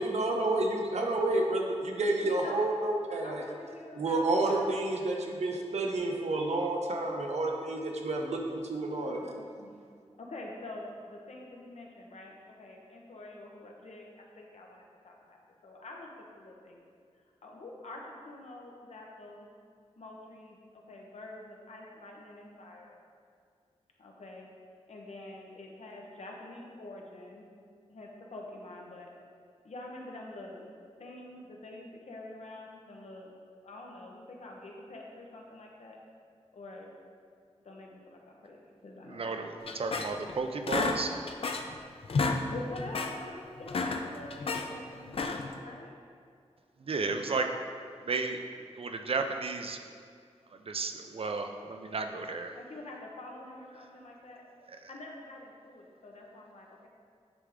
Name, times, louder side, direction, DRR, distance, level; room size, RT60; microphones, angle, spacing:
voice 1, 0.0-3.4 4.0-9.2, right 2 dB, 75° right, 0 dB, 0.9 m, -30 dB
voice 2, 2.2-2.8 3.2-4.8 9.0-9.7 10.2-15.4 15.6-16.8 17.4-19.5 20.0-23.0 24.0-24.5 24.9-27.4 27.9-29.1 29.6-30.7 31.0-33.3 33.6-36.0 36.5-36.9 37.6-39.5 42.5-45.3 45.6-45.9 52.5-54.4 54.9-56.9, left 2 dB, 75° left, -1 dB, 0.9 m, -46 dB
voice 3, 39.1-41.1 46.8-47.5 48.0-48.4 48.8-49.8 50.6-52.6, right 4 dB, 55° right, 5 dB, 0.5 m, -33 dB
sound 1, 39.7-40.3 40.7-41.8 42.0-42.4 42.8-43.2 43.6-44.7 45.1-45.6, left 4 dB, 55° left, 0.4 m, -31 dB
9.4 x 3.5 x 3.6 m, 2.2 s
wide cardioid pair, 120°, 11 cm